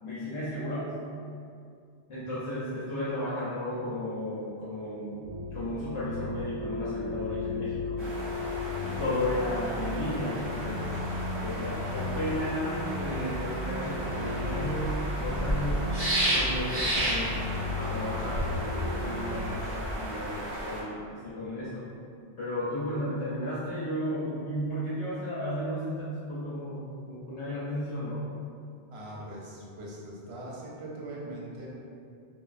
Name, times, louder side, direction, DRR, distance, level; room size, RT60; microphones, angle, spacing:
voice 1, 0.0-0.9 2.1-5.2 5.5-8.0 8.8-10.9 11.4-15.8 16.3-17.4 17.8-21.8 22.4-28.3, left 1 dB, 75° left, -9 dB, 0.9 m, -34 dB
sound 1, 5.2-19.6, left 2 dB, 50° right, 0.4 m, -35 dB
sound 2, 8.0-20.8, right 1 dB, 20° left, 1.6 m, -33 dB
voice 2, 28.9-31.7, right 1 dB, 70° right, -4 dB, 0.9 m, -41 dB
3.0 x 2.3 x 2.4 m, 2.4 s
omnidirectional pair, 1.2 m